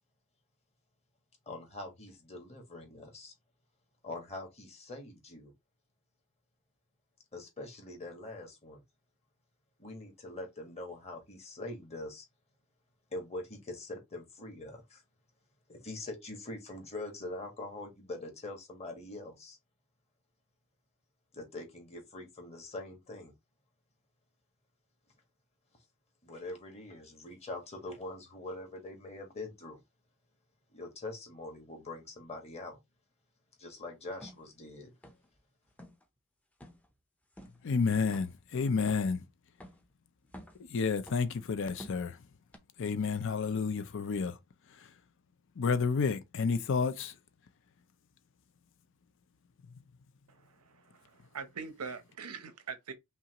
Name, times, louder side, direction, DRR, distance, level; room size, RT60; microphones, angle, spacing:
voice 1, 1.5-3.3 4.0-5.5 7.3-8.8 9.8-12.2 13.1-15.0 15.7-19.6 21.3-23.3 26.2-29.8 30.7-32.8 33.6-34.9, left 2 dB, 30° left, 1.4 m, -43 dB
sound 1, 34.2-34.4 35.0-35.4 35.7-36.0 36.6-36.9 37.4-37.6 38.1-38.5 38.9-39.2 39.6-39.9 40.2-40.7 41.1-41.4 41.8-42.1 42.5-42.6, equal, 5° left, 0.6 m, -50 dB
voice 2, 37.6-39.2 40.7-42.2 42.8-44.4 45.6-47.1, left 5 dB, 55° left, 0.5 m, -30 dB
voice 3, 50.3-52.9, right 5 dB, 90° right, 0.8 m, -43 dB
5.5 x 2.4 x 2.9 m
head